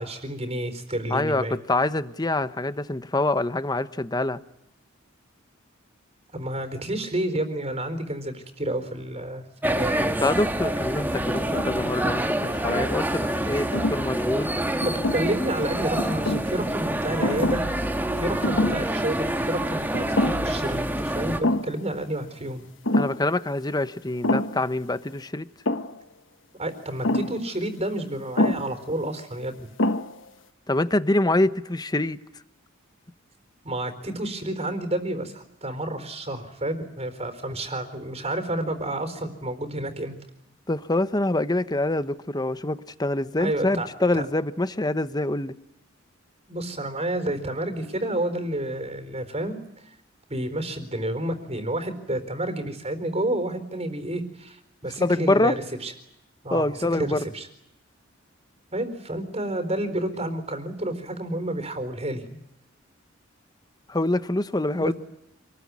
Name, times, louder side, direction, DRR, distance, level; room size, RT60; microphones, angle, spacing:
voice 1, 0.0-1.6 6.3-10.1 14.8-17.6 18.1-22.7 26.6-29.6 33.6-40.1 43.4-43.9 44.1-44.3 46.5-49.6 50.3-55.5 55.8-55.9 56.4-57.5 58.7-62.2 64.8-64.9, right 1 dB, 30° right, 8 dB, 4.2 m, -30 dB
voice 2, 1.1-4.4 10.0-14.5 22.9-25.5 30.7-32.2 40.7-45.5 54.8-55.6 56.5-57.2 63.9-64.9, left 2 dB, 20° left, 13 dB, 1.0 m, -25 dB
sound 1, 9.6-21.4, right 1 dB, 10° right, 1.6 m, -27 dB
sound 2, 11.3-11.9 12.4-13.1 13.7-14.0 14.8-15.5 16.0-16.5 17.2-17.7 18.0-18.1 18.4-18.9 19.3-19.4 19.9-20.6 20.9-21.0 21.4-21.8 22.8-23.2 24.2-24.7 25.6-26.0 27.0-27.4 28.4-28.7 29.4-29.5 29.8-30.3, left 1 dB, 70° left, 1.3 m, -26 dB
27.5 x 21.0 x 9.7 m, 0.83 s
head